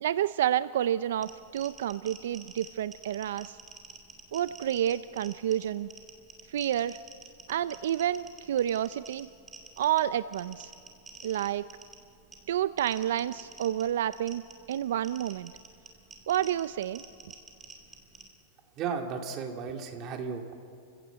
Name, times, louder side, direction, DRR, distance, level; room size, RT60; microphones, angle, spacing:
voice 1, 0.0-3.6 4.3-5.9 6.5-7.0 7.5-9.3 9.8-10.7 11.2-11.7 12.5-14.4 14.7-15.5 16.3-17.0, right 11 dB, 80° right, 15 dB, 0.5 m, -29 dB
sound 1, 1.1-18.3, right 4 dB, 15° right, 2.3 m, -50 dB
voice 2, 18.8-20.6, right 6 dB, 30° right, 3 dB, 2.5 m, -34 dB
29.5 x 16.0 x 8.1 m, 2.5 s
supercardioid pair, 160°, 0 cm